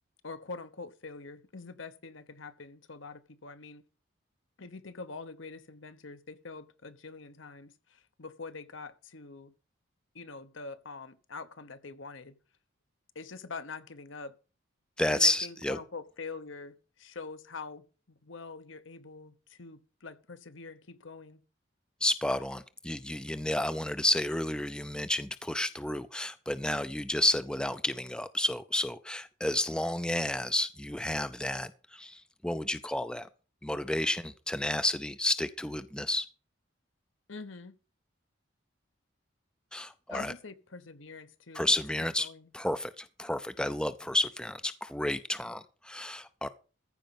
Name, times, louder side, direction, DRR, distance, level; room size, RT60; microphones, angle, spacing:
voice 1, 0.2-3.8 4.6-9.5 10.1-12.4 13.1-14.3 15.1-21.4 37.3-37.8 40.1-41.7 42.2-42.5, left 4 dB, 70° left, 1.1 m, -45 dB
voice 2, 15.0-15.8 22.0-33.3 33.6-36.3 39.7-40.3 41.5-42.3 42.5-46.5, left 1 dB, 5° left, 0.5 m, -31 dB
14.5 x 5.3 x 7.1 m
head